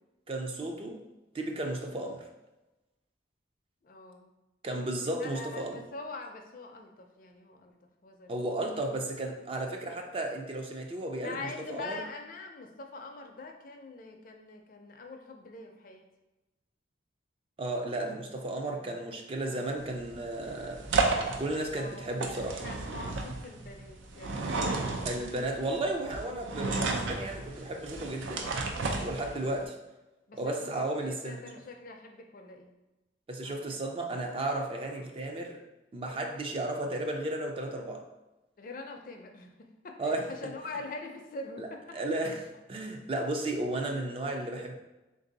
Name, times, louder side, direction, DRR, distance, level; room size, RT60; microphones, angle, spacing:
voice 1, 0.3-1.0 1.3-2.2 4.6-5.8 8.3-12.0 17.6-20.9 21.4-22.6 25.0-28.5 29.0-29.8 30.4-31.5 33.3-35.6 35.9-38.0 40.0-40.3 41.6-44.8, right 1 dB, 30° right, 3 dB, 0.4 m, -34 dB
voice 2, 3.8-4.3 5.2-7.7 8.0-8.4 9.6-9.7 11.2-16.0 18.6-18.9 19.5-19.8 21.7-24.7 29.5-29.7 30.3-32.7 33.4-33.8 34.2-34.3 34.6-35.2 38.6-39.5 39.8-42.3, left 3 dB, 45° left, 4 dB, 0.4 m, -44 dB
sound 1, 19.8-29.6, right 3 dB, 90° right, 0.5 m, -33 dB
3.6 x 2.6 x 3.9 m, 1.0 s
head